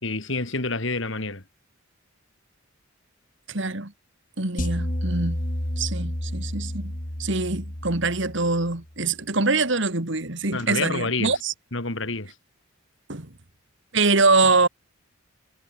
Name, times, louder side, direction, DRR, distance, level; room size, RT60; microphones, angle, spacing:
voice 1, 0.0-1.4 10.5-11.3 11.7-12.3, left 3 dB, 60° left, 3.0 m, -28 dB
voice 2, 3.5-3.9 4.4-5.4 5.8-6.9 7.2-11.5 13.1-13.3 13.9-14.7, right 3 dB, 60° right, 2.1 m, -24 dB
sound 1, 4.6-8.9, equal, 40° left, 3.7 m, -30 dB
head